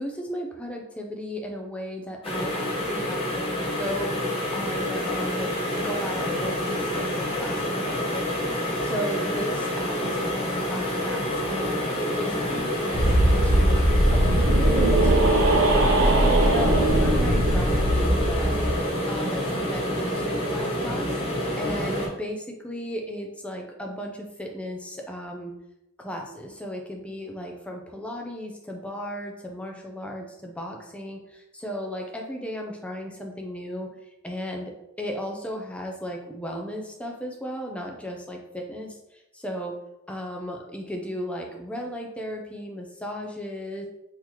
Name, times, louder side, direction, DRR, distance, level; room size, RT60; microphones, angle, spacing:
voice 1, 0.0-13.9 14.1-25.5 26.0-34.0 34.2-39.7 40.1-43.9, equal, 5° left, 1 dB, 0.4 m, -35 dB
sound 1, 2.2-22.1, equal, 25° left, 1.0 m, -28 dB
sound 2, 12.9-18.8, right 1 dB, 60° right, 0.6 m, -20 dB
3.8 x 2.9 x 2.9 m, 0.90 s
head